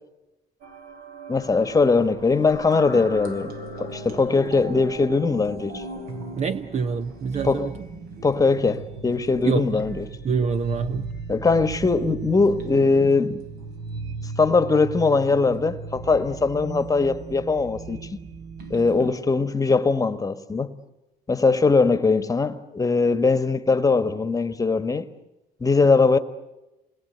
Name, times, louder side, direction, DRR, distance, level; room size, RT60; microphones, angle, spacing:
sound 1, 0.6-19.1, right 3 dB, 65° right, 4.1 m, -37 dB
voice 1, 1.3-3.5 3.8-5.8 7.4-7.7 8.2-10.0 11.3-13.4 14.4-18.0 18.7-20.7 21.3-25.1 25.6-26.2, left 4 dB, 20° left, 1.4 m, -21 dB
voice 2, 6.4-7.7 9.4-9.8 10.2-11.1, right 5 dB, 40° right, 0.9 m, -26 dB
28.0 x 21.0 x 8.0 m
cardioid pair, 110°, 17 cm